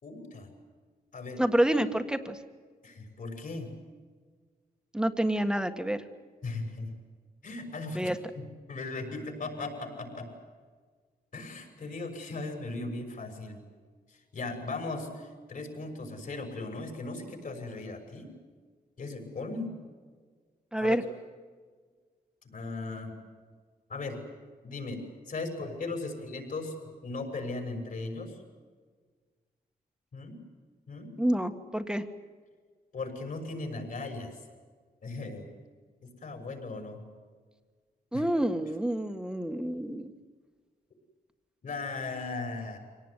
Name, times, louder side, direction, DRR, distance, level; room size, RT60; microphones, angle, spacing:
voice 1, 0.0-0.5 1.1-1.4 2.8-3.7 6.4-6.9 7.4-10.3 11.3-13.6 14.1-18.3 19.0-19.7 20.8-21.0 22.4-23.1 23.9-24.2 24.6-25.0 25.3-28.4 30.1-30.4 30.9-31.2 32.9-34.4 35.0-35.5 36.0-37.0 38.1-38.2 41.6-42.8, left 3 dB, 55° left, 3 dB, 6.5 m, -37 dB
voice 2, 1.4-2.4 4.9-6.0 8.0-8.2 20.7-21.0 31.2-32.0 38.1-40.1, right 1 dB, 5° right, 8 dB, 1.6 m, -28 dB
26.0 x 18.5 x 9.9 m, 1.5 s
wide cardioid pair, 125°, 16 cm